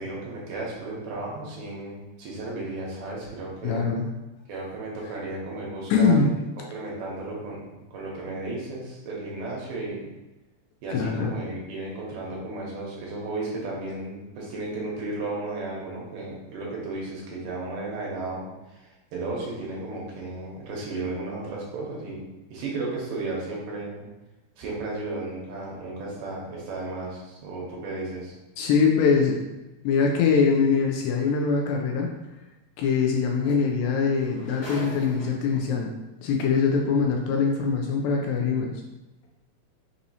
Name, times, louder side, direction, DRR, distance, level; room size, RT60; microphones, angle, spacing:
voice 1, 0.0-3.9 4.5-6.3 6.7-10.0 10.8-22.2 22.5-24.0 24.6-28.3, right 2 dB, 75° right, -4 dB, 2.3 m, -34 dB
voice 2, 3.6-4.1 5.9-6.3 10.9-11.4 28.6-29.4 29.8-32.1 32.8-35.9 36.2-38.8, left 5 dB, 80° left, 1 dB, 2.1 m, -23 dB
sound 1, 31.3-31.4 33.1-33.2 33.4-35.7 36.6-36.7, left 1 dB, 50° left, 1.3 m, -41 dB
5.9 x 2.7 x 2.7 m, 1.0 s
omnidirectional pair, 4.2 m